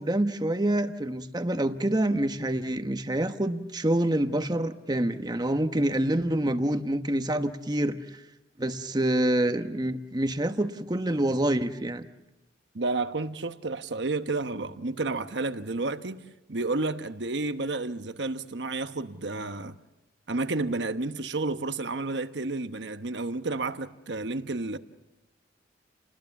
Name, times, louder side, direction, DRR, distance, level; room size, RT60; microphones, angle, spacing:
voice 1, 0.0-8.2 8.6-12.1, right 1 dB, 20° right, 1.1 m, -27 dB
voice 2, 12.7-16.2 16.5-19.8 20.3-24.8, right 3 dB, 75° right, 1.1 m, -31 dB
30.0 x 20.0 x 7.1 m
head